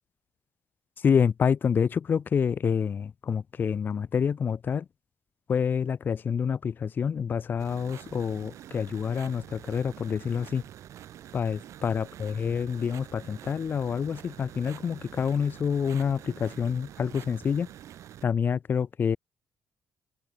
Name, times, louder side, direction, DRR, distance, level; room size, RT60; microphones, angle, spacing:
voice 1, 1.0-4.8 5.5-10.6 11.3-17.7 18.2-19.2, left 7 dB, 40° left, 0.8 m, -27 dB
sound 1, 7.6-18.2, right 11 dB, 75° right, 7.5 m, -47 dB
open air
cardioid pair, 145°, 5 cm